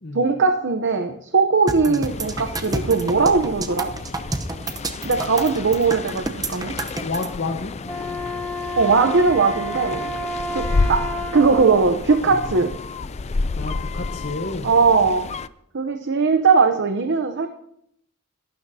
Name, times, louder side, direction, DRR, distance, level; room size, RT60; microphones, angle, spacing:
voice 1, 0.1-3.9 5.0-6.7 8.8-10.0 10.5-11.1 11.3-12.7 14.6-15.3 15.7-17.5, right 4 dB, 60° right, 6 dB, 0.8 m, -19 dB
sound 1, 1.7-7.3, right 2 dB, 20° right, 0.8 m, -29 dB
sound 2, 2.1-15.5, left 3 dB, 30° left, 0.4 m, -30 dB
voice 2, 7.0-7.7 10.7-10.9 13.6-14.7, left 3 dB, 50° left, 3 dB, 1.2 m, -30 dB
Wind instrument woodwind instrument, 7.8-11.9, equal, 5° left, 1.4 m, -30 dB
23.5 x 12.0 x 2.8 m, 0.73 s
head